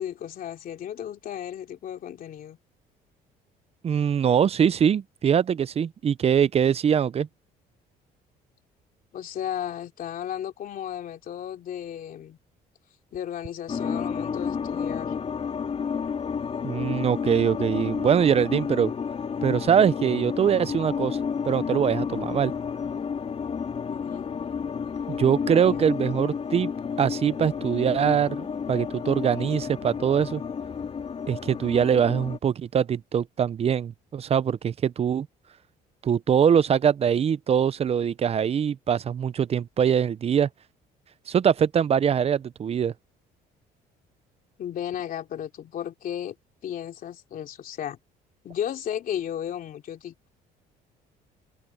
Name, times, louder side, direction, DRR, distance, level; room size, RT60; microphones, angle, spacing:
voice 1, 0.0-2.6 9.1-12.4 13.1-15.2 23.9-24.3 25.6-25.9 44.6-46.4 46.6-48.0 48.4-50.3, left 10 dB, 55° left, 3.0 m, -34 dB
voice 2, 3.8-7.3 16.6-18.9 19.4-21.2 21.5-22.5 25.1-26.7 27.0-30.4 31.3-35.3 36.0-40.5 41.3-42.9, right 8 dB, 35° right, 0.6 m, -23 dB
sound 1, 13.7-32.4, left 6 dB, 35° left, 3.0 m, -31 dB
cardioid pair, 110°, 17 cm